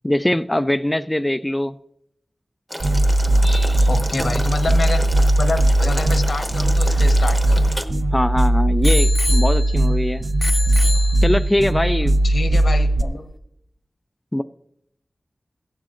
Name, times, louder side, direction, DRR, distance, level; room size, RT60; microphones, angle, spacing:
voice 1, 0.0-1.8 3.4-3.9 8.1-10.2 11.2-12.2 14.3-14.4, left 1 dB, 15° left, 10 dB, 0.3 m, -22 dB
Boiling, 2.7-7.8, equal, 10° right, 0.9 m, -31 dB
sound 1, 2.8-13.0, right 1 dB, 50° right, 0.6 m, -18 dB
voice 2, 3.9-5.1 5.4-7.7 10.9-11.0 12.2-13.3, left 3 dB, 85° left, 6 dB, 1.1 m, -27 dB
Bicycle bell, 6.5-8.2 8.8-10.0 10.4-11.7 12.4-12.5, left 3 dB, 65° left, 0.7 m, -29 dB
16.0 x 11.5 x 2.5 m, 0.75 s
wide cardioid pair, 85°, 0 cm